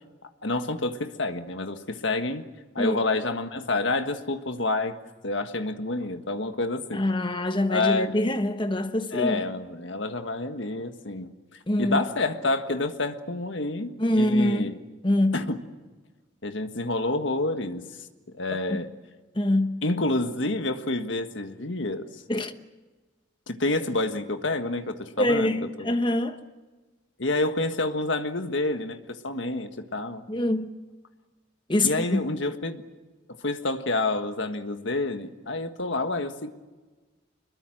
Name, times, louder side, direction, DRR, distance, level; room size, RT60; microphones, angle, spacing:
voice 1, 0.4-2.4 2.7-5.0 5.2-7.0 7.7-8.1 9.1-11.3 11.8-14.8 15.3-15.6 16.4-17.8 18.3-18.9 19.8-22.0 23.5-25.5 25.8-25.9 27.2-30.2 31.8-32.8 33.4-36.5, left 2 dB, 75° left, 1.6 m, -28 dB
voice 2, 6.9-9.4 11.7-12.1 14.0-14.7 15.0-15.4 18.7-18.8 19.3-19.8 22.3-22.5 25.2-26.4 30.3-30.7 31.7-32.2, left 1 dB, 25° left, 1.2 m, -24 dB
25.0 x 22.0 x 7.8 m
head